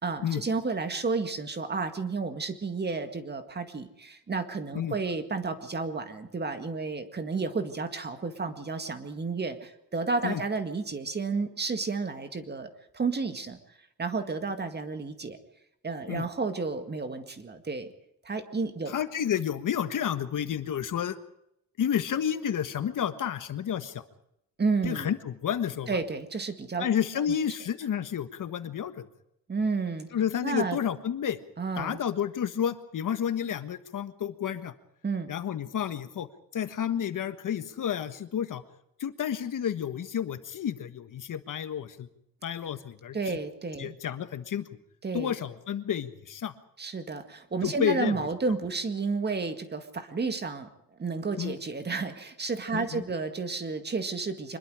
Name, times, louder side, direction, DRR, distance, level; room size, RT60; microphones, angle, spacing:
voice 1, 0.0-13.6 14.0-15.4 15.8-17.9 18.3-18.9 24.6-25.1 25.9-26.9 29.5-30.1 30.4-30.8 31.6-32.0 35.0-35.3 43.1-43.9 45.0-45.3 46.8-50.7 51.0-54.6, right 4 dB, 30° right, 8 dB, 2.0 m, -31 dB
voice 2, 18.9-21.2 21.8-24.1 24.8-25.9 26.8-29.1 30.1-31.4 31.8-34.7 35.3-36.3 36.5-38.6 39.0-42.1 42.4-43.4 43.8-44.7 45.1-46.5 47.6-48.3 51.4-51.6 52.7-53.0, left 9 dB, 60° left, 10 dB, 1.5 m, -30 dB
24.5 x 21.5 x 5.0 m, 0.79 s
wide cardioid pair, 160°, 35 cm